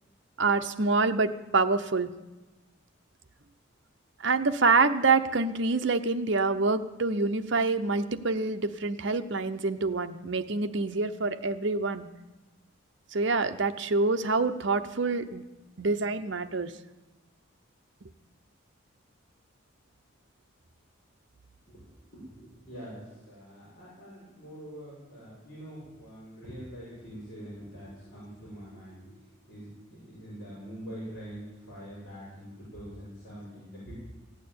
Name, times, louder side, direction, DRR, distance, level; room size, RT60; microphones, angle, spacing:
voice 1, 0.4-2.1 4.2-12.1 13.1-15.4 15.8-16.7, right 3 dB, 60° right, 8 dB, 0.8 m, -26 dB
voice 2, 22.1-29.2 29.5-33.9, equal, 45° left, -10 dB, 6.4 m, -44 dB
15.5 x 9.0 x 8.8 m, 1.1 s
head